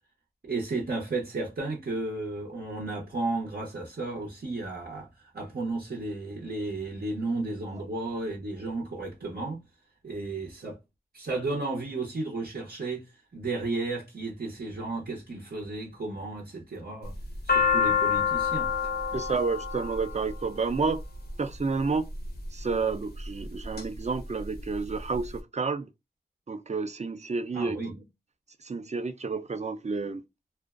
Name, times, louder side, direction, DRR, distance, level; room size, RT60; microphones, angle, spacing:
voice 1, 0.4-9.6 10.0-10.8 11.1-17.2 17.4-18.7 27.5-28.0, right 2 dB, 85° right, 0.7 m, -33 dB
sound 1, 17.0-21.3 22.1-22.6 23.2-23.8 24.2-24.3 24.4-25.3, left 6 dB, 85° left, 0.6 m, -27 dB
voice 2, 19.1-21.0 21.4-22.1 22.5-25.9 26.5-27.9 28.6-30.2, right 4 dB, 45° right, 0.4 m, -30 dB
2.4 x 2.2 x 2.3 m
wide cardioid pair, 55°, 16 cm